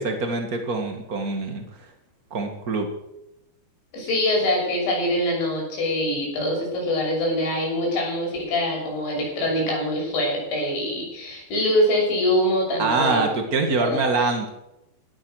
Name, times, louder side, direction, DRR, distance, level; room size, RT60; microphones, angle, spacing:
voice 1, 0.0-1.9 2.3-2.9 12.8-14.5, right 3 dB, 80° right, 4 dB, 0.8 m, -24 dB
voice 2, 3.9-13.3 13.8-14.0, left 1 dB, 85° left, -1 dB, 8.9 m, -24 dB
17.5 x 12.5 x 6.5 m, 0.91 s
omnidirectional pair, 5.0 m